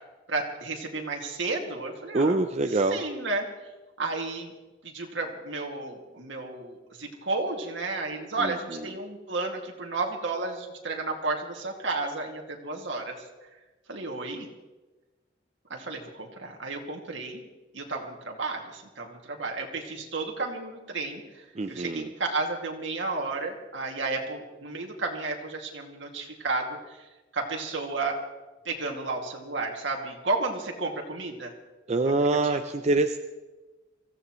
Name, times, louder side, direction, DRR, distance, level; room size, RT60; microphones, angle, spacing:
voice 1, 0.3-2.4 2.9-3.5 4.0-4.5 4.8-13.2 13.9-14.5 15.7-17.4 17.7-27.1 27.3-28.2 28.6-31.5 32.0-32.1, right 3 dB, 70° right, 1 dB, 2.3 m, -32 dB
voice 2, 2.1-3.0 8.4-8.8 21.5-22.1 31.9-33.2, right 2 dB, 35° right, 6 dB, 0.6 m, -25 dB
24.5 x 15.5 x 3.1 m, 1.2 s
head